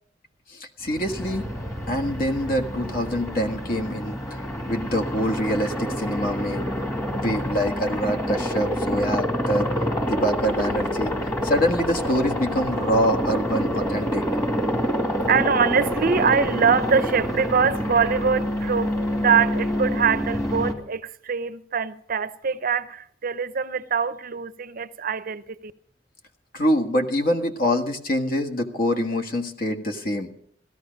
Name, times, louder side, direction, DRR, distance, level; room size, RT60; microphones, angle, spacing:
voice 1, 0.5-1.5 1.9-4.4 4.6-6.7 7.2-9.7 10.1-14.2 26.5-30.3, equal, 50° left, 1.5 m, -25 dB
Aircraft, 0.9-20.7, equal, 20° left, 2.1 m, -27 dB
voice 2, 15.3-25.7, right 6 dB, 50° right, 0.6 m, -23 dB
16.5 x 13.5 x 5.2 m
head